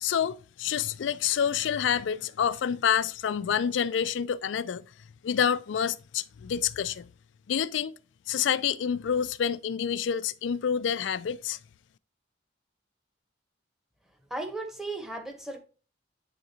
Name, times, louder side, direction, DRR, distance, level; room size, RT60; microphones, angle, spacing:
voice 1, 0.0-4.8 5.2-7.1 7.5-7.9 8.3-11.6, left 8 dB, 75° left, 0.4 m, -28 dB
voice 2, 14.3-15.6, right 2 dB, ahead, 0.9 m, -35 dB
9.3 x 3.7 x 2.8 m
head